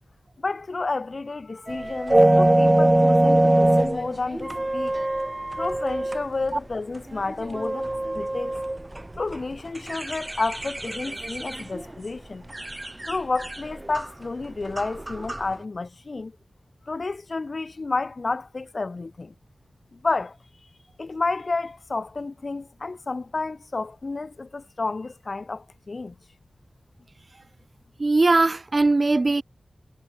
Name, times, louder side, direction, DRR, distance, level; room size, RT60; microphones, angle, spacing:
voice 1, 0.4-5.0 5.5-8.6 9.2-12.5 13.0-16.3 16.9-19.3 19.9-20.4 21.0-26.2, left 3 dB, 45° left, 4.6 m, -30 dB
sound 1, 1.7-6.2 6.7-6.8 7.1-11.9 12.5-14.1 14.7-15.5, right 1 dB, 20° right, 1.2 m, -23 dB
voice 2, 28.0-29.4, right 3 dB, 40° right, 2.9 m, -20 dB
wide cardioid pair, 100°, 0 cm